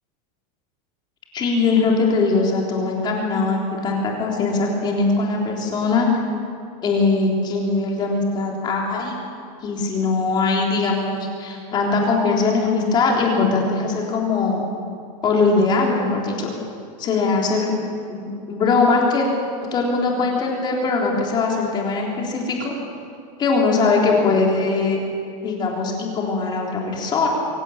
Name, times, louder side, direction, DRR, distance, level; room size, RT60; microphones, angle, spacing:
voice 1, 1.3-6.1 6.8-9.1 9.6-14.6 15.2-16.5 17.0-19.3 19.7-22.8 23.4-25.0 25.4-27.3, left 4 dB, 20° left, -1 dB, 3.6 m, -21 dB
24.0 x 16.5 x 8.6 m, 2.4 s
supercardioid pair, 175°, 21 cm